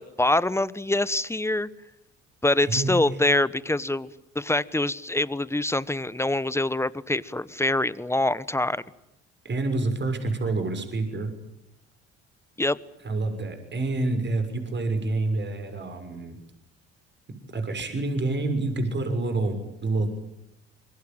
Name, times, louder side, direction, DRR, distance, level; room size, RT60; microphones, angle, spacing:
voice 1, 0.0-1.7 2.4-4.1 4.3-8.8 12.6-12.8, left 2 dB, 10° left, 17 dB, 1.2 m, -25 dB
voice 2, 2.6-2.9 9.4-11.3 13.0-16.4 17.5-20.1, right 2 dB, 35° right, 7 dB, 6.5 m, -27 dB
26.5 x 23.0 x 9.1 m, 0.84 s
hypercardioid pair, 65°, 30 cm